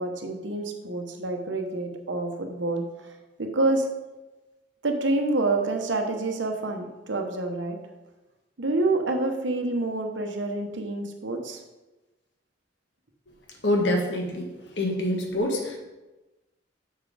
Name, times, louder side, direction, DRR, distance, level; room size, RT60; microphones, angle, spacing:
voice 1, 0.0-2.8 3.4-3.9 4.8-7.8 8.6-11.6, right 2 dB, 90° right, 4 dB, 1.0 m, -27 dB
voice 2, 13.6-14.5 14.8-15.8, left 1 dB, 75° left, 1 dB, 1.4 m, -25 dB
6.5 x 5.2 x 4.9 m, 1.1 s
head